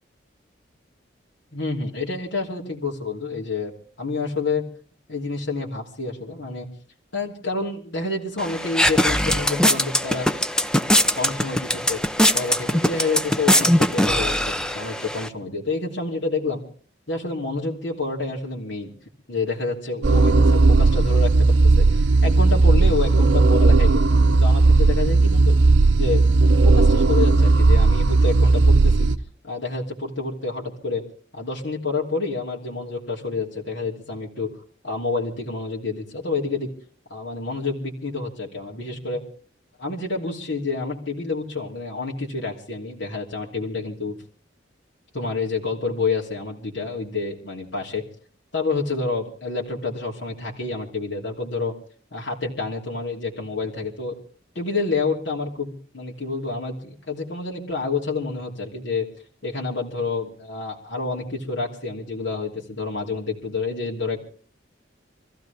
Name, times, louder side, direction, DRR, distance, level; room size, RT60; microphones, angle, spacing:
voice 1, 1.5-3.7 4.0-4.6 5.1-6.7 7.1-10.3 11.2-12.0 12.3-16.6 17.1-18.9 19.3-25.5 25.9-29.1 29.4-31.0 31.3-34.5 34.8-36.7 37.1-39.2 39.8-44.1 45.1-48.0 48.5-51.7 52.1-54.2 54.5-59.1 59.4-64.2, left 3 dB, 80° left, -3 dB, 3.0 m, -28 dB
sound 1, 8.4-15.3, equal, 5° left, 0.7 m, -21 dB
sound 2, 20.0-29.2, right 3 dB, 80° right, 0.7 m, -16 dB
25.5 x 15.0 x 3.5 m, 0.43 s
head